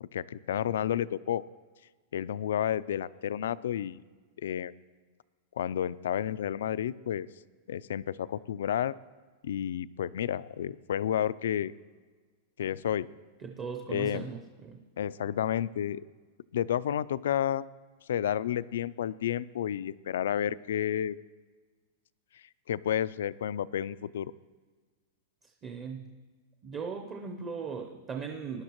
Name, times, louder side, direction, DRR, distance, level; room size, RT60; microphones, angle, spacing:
voice 1, 0.0-1.4 2.1-4.0 4.4-4.7 5.6-7.3 7.7-8.9 9.4-11.7 12.6-13.1 13.9-14.3 15.0-16.0 16.5-17.7 18.1-21.2 22.7-24.3, left 10 dB, 85° left, 18 dB, 0.3 m, -31 dB
voice 2, 13.4-14.8 25.6-26.1 26.6-28.6, right 5 dB, 20° right, 3 dB, 0.7 m, -38 dB
19.5 x 11.0 x 3.0 m, 1.4 s
supercardioid pair, 170°, 0 cm